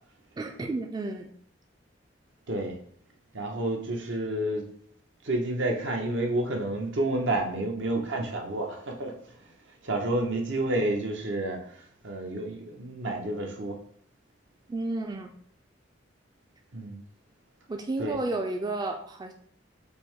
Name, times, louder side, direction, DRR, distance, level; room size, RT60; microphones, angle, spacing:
voice 1, 0.4-1.3 14.7-15.3 17.7-19.3, right 2 dB, 20° right, 3 dB, 0.3 m, -32 dB
voice 2, 2.5-2.8 3.3-4.7 5.2-9.1 9.8-11.6 12.0-13.8 16.7-17.0 18.0-18.2, right 1 dB, 75° right, 2 dB, 0.9 m, -29 dB
5.3 x 2.1 x 4.6 m, 0.62 s
head